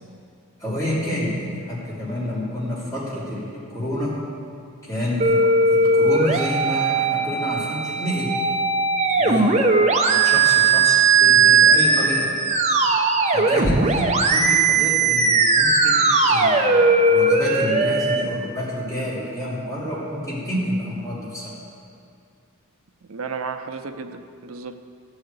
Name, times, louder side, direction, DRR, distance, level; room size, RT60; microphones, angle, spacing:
voice 1, 0.6-4.1 4.8-8.3 9.2-12.4 13.3-21.5, left 1 dB, 15° left, -9 dB, 3.0 m, -29 dB
sound 1, 5.2-18.2, right 4 dB, 30° right, 0.7 m, -18 dB
voice 2, 23.1-24.8, right 5 dB, 75° right, 7 dB, 0.6 m, -33 dB
14.0 x 4.9 x 8.2 m, 2.4 s
head